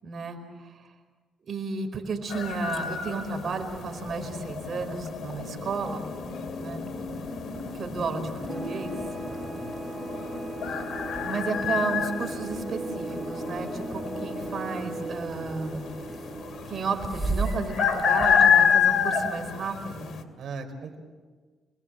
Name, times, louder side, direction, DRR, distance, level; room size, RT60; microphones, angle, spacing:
voice 1, 0.0-0.9 1.5-6.0 6.6-6.8 7.7-8.9 11.2-15.9 16.7-20.1, right 4 dB, 50° right, 5 dB, 4.9 m, -33 dB
sound 1, 2.3-20.2, left 7 dB, 55° left, 3.0 m, -29 dB
sound 2, 2.4-19.6, right 3 dB, 10° right, 2.8 m, -41 dB
voice 2, 5.3-5.6 6.3-6.5 9.4-10.0 20.4-21.0, right 4 dB, 65° right, 5 dB, 4.7 m, -41 dB
sound 3, 8.5-17.8, right 2 dB, 30° right, 1.9 m, -38 dB
29.5 x 21.0 x 7.6 m, 1.4 s
cardioid pair, 90°, 0 cm